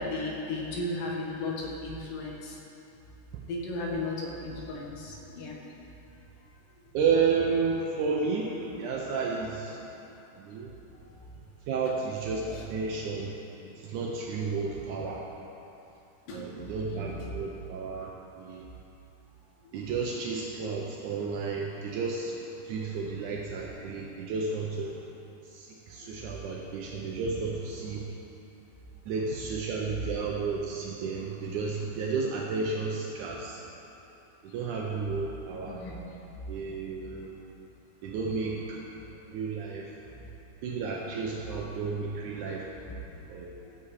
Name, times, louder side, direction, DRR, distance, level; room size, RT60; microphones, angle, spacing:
voice 1, 0.0-2.6 3.5-5.6 12.5-12.6 16.3-16.5 16.9-17.1 26.0-26.1 26.5-26.6 35.6-36.0 42.9-43.0 43.6-43.7, left 2 dB, 65° left, -2 dB, 2.8 m, -35 dB
voice 2, 6.9-9.8 10.4-10.7 11.7-13.3 13.8-15.2 16.3-18.1 18.4-18.6 19.7-24.9 25.5-28.0 29.1-33.6 34.4-35.8 36.5-37.3 38.0-38.8 39.3-39.9 40.6-42.6 43.3-43.5, right 4 dB, 85° right, -2 dB, 1.7 m, -32 dB
14.0 x 8.5 x 4.8 m, 2.9 s
omnidirectional pair, 4.5 m